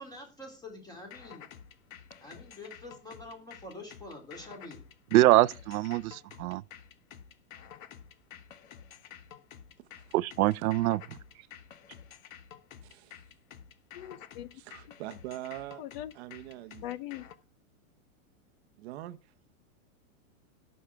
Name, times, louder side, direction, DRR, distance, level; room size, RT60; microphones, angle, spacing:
voice 1, 0.0-1.5 2.2-4.8, left 1 dB, 10° left, 3.1 m, -46 dB
sound 1, 1.1-17.3, left 9 dB, 65° left, 1.3 m, -50 dB
voice 2, 5.1-6.6 10.1-11.0, right 16 dB, 80° right, 0.6 m, -24 dB
voice 3, 12.8-13.2 14.6-15.8 16.1-16.9 18.8-19.2, right 14 dB, 45° right, 0.9 m, -43 dB
voice 4, 13.9-14.5 15.8-16.1 16.8-17.2, left 13 dB, 40° left, 0.8 m, -40 dB
17.5 x 6.5 x 3.5 m
supercardioid pair, 155°, 43 cm